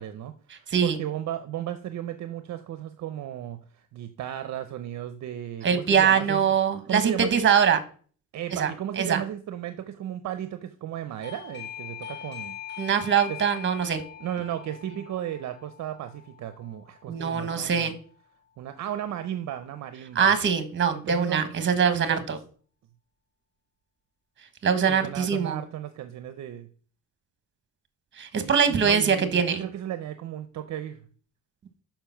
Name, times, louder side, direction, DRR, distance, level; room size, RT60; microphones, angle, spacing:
voice 1, 0.0-6.4 6.9-7.4 8.3-12.6 13.3-13.4 14.2-17.9 18.6-20.3 20.9-21.4 21.8-22.3 24.9-26.7 28.4-31.0, right 11 dB, 60° right, 11 dB, 0.7 m, -35 dB
voice 2, 5.6-7.8 8.5-8.7 9.0-9.2 12.8-14.0 17.1-18.0 20.1-22.4 24.6-25.6 28.2-29.6, right 7 dB, 35° right, 11 dB, 1.3 m, -23 dB
Doorbell, 11.2-17.7, left 10 dB, 35° left, 1.4 m, -42 dB
6.8 x 5.8 x 5.7 m, 0.43 s
cardioid pair, 135°, 32 cm